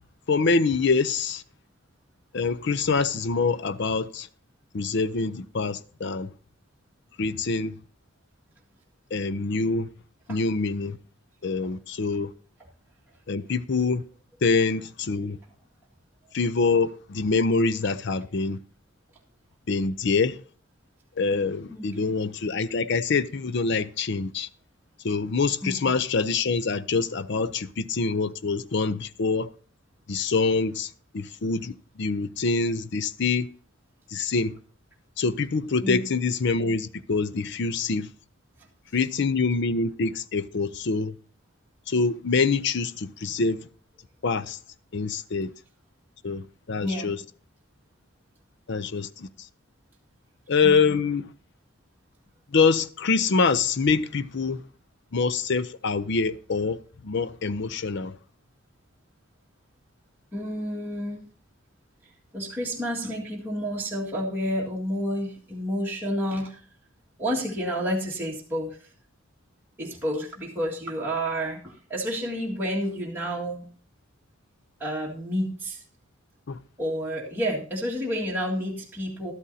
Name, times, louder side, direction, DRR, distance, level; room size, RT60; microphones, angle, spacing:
voice 1, 0.3-1.4 2.3-4.3 4.7-6.3 7.2-7.8 9.1-9.9 10.3-11.0 11.4-12.3 13.3-14.0 14.4-15.4 16.3-18.6 19.7-20.4 21.2-24.5 25.0-29.5 30.1-33.5 34.1-34.6 35.2-38.1 38.9-41.1 41.9-43.6 44.2-44.6 44.9-45.5 46.2-47.2 48.7-49.3 50.5-51.3 52.5-54.6 55.1-56.8 57.0-58.1 76.5-76.6, left 4 dB, 55° left, 0.5 m, -25 dB
voice 2, 25.6-25.9 35.8-36.0 46.8-47.2 50.6-51.0 60.3-61.3 62.3-66.6 67.2-68.8 69.8-73.7 74.8-75.8 76.8-79.3, equal, 10° right, 1.8 m, -30 dB
12.5 x 12.0 x 2.8 m
head